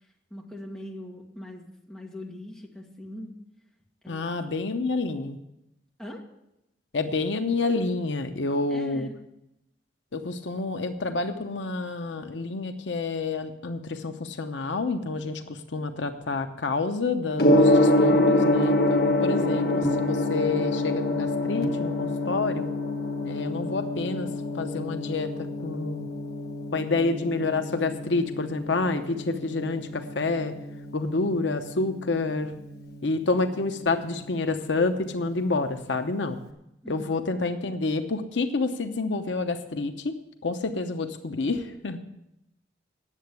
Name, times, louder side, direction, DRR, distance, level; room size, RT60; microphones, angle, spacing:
voice 1, 0.3-3.4 4.0-4.5 6.0-6.3 8.7-9.1 36.8-37.2, left 1 dB, 5° left, -2 dB, 1.8 m, -41 dB
voice 2, 4.1-5.4 6.9-9.1 10.1-22.7 23.2-24.3 24.5-26.1 26.7-30.5 30.9-32.5 33.0-36.4 36.9-40.2 40.4-42.0, left 3 dB, 75° left, 7 dB, 0.8 m, -28 dB
Gong, 17.4-36.4, left 1 dB, 55° left, 1.2 m, -27 dB
10.0 x 7.6 x 8.2 m, 0.85 s
head